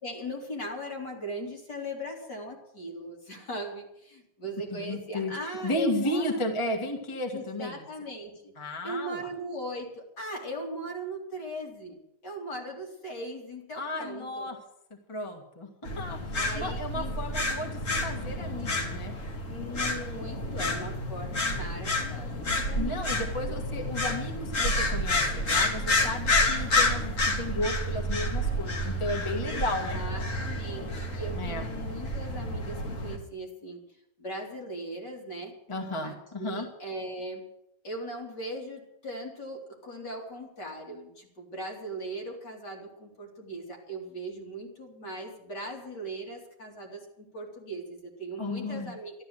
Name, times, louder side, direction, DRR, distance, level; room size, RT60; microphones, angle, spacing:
voice 1, 0.0-6.4 7.3-8.5 8.8-12.0 12.2-14.5 16.3-17.2 19.5-23.6 29.4-29.6 29.9-33.8 34.2-35.6 36.0-37.5 37.8-49.1, right 1 dB, 60° left, 0 dB, 3.7 m, -39 dB
voice 2, 4.7-5.3 5.6-7.8 8.6-9.3 13.7-14.6 15.1-19.2 22.7-30.0 31.3-31.6 35.7-36.7 48.4-49.0, left 1 dB, 15° left, 3 dB, 1.7 m, -33 dB
sound 1, 15.8-33.2, left 1 dB, 40° left, 2.1 m, -29 dB
13.0 x 12.5 x 7.9 m, 0.80 s
omnidirectional pair, 2.1 m